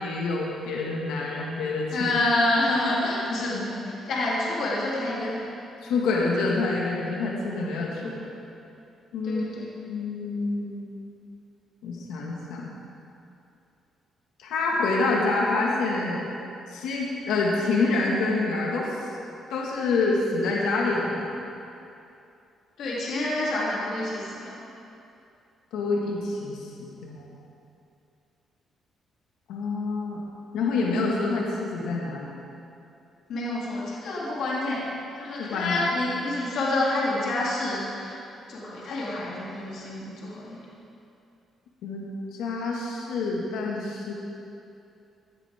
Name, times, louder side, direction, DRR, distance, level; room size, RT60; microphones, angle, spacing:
voice 1, 0.0-2.1 5.8-8.3 9.1-9.4 9.9-10.9 11.8-12.7 14.4-16.2 16.7-19.0 19.5-21.3 25.7-27.3 29.5-30.2 30.5-32.4 35.4-35.8 41.8-44.1, left 3 dB, 90° left, -3 dB, 1.9 m, -27 dB
voice 2, 1.9-5.5 8.0-8.2 9.2-9.7 22.8-24.6 33.3-34.8 35.2-38.2 38.5-40.6, left 2 dB, 70° left, -6 dB, 3.1 m, -28 dB
17.0 x 10.0 x 3.7 m, 2.7 s
cardioid pair, 90°, 0 cm